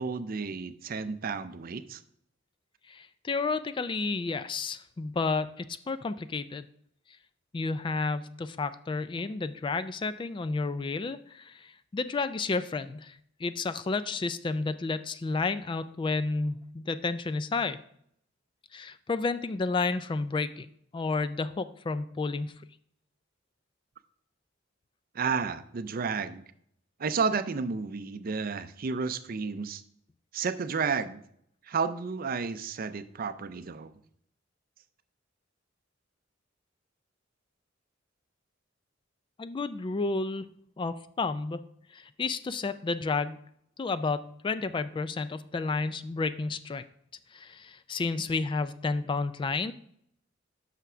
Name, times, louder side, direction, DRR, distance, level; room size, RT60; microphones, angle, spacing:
voice 1, 0.0-2.0 25.1-26.4 27.0-29.8 30.3-31.2 31.7-33.9, right 5 dB, 50° right, 12 dB, 0.5 m, -31 dB
voice 2, 2.9-6.7 7.5-17.8 18.7-20.7 20.9-22.6 39.4-40.5 40.8-41.6 41.9-43.4 43.8-46.8 47.3-49.7, left 3 dB, 25° left, 13 dB, 0.3 m, -31 dB
5.9 x 5.7 x 6.1 m, 0.68 s
head